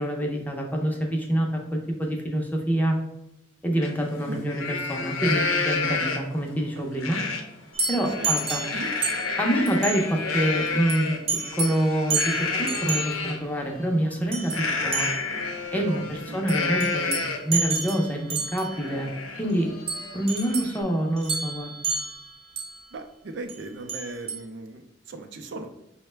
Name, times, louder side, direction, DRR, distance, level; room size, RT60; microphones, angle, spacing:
voice 1, 0.0-3.0 3.6-7.2 7.9-8.6 9.4-15.1 15.7-19.1 19.4-19.7 20.1-21.7, right 1 dB, 10° left, 0 dB, 0.5 m, -26 dB
Livestock farm animals working animals, 3.8-3.9 4.3-6.4 7.0-7.4 7.8-13.4 14.5-17.6 18.0-18.1 18.5-20.8, left 4 dB, 80° left, 0.6 m, -30 dB
voice 2, 7.0-7.4 8.0-8.5 8.7-8.9 15.7-16.5 22.9-25.7, right 2 dB, 60° right, 6 dB, 0.4 m, -38 dB
sound 1, 7.7-9.4 9.7-10.1 10.9-11.0 11.3-11.8 12.1-13.1 14.3-14.6 14.9-15.4 16.5-18.8 19.9-20.8 21.2-22.8 23.5-23.6 23.9-24.4, right 4 dB, 30° right, 0.8 m, -30 dB
5.5 x 2.1 x 3.2 m, 0.88 s
head